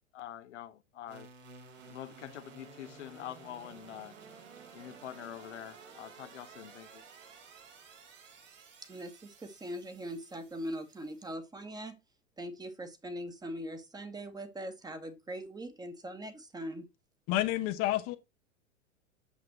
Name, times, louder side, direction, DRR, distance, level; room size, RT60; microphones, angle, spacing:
voice 1, 0.1-1.3 1.8-4.2 4.7-7.0, left 11 dB, 65° left, 1.0 m, -45 dB
sound 1, 1.1-11.3, right 5 dB, 65° right, 3.4 m, -54 dB
voice 2, 8.9-12.0 12.4-16.9, equal, 10° right, 1.4 m, -41 dB
voice 3, 17.3-18.2, left 15 dB, 35° left, 1.0 m, -29 dB
8.3 x 7.5 x 2.9 m
figure-of-eight pair, 90°, 39 cm